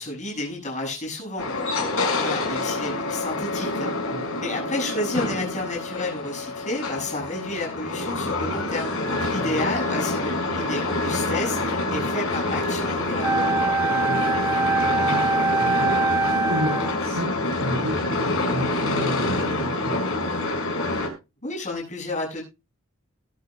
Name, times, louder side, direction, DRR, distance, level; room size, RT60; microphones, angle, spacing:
voice 1, 0.0-3.9 4.4-13.5 21.4-22.4, left 2 dB, 35° left, -1 dB, 7.6 m, -31 dB
sound 1, 1.4-21.1, left 2 dB, 70° left, 5.6 m, -27 dB
voice 2, 4.1-4.4 9.4-9.5 13.9-14.7 15.0-15.3 15.6-20.2, equal, 80° right, -4 dB, 6.8 m, -32 dB
Wind instrument woodwind instrument, 13.2-17.0, right 3 dB, 10° right, 0.6 m, -23 dB
21.5 x 10.5 x 2.2 m, 0.27 s
head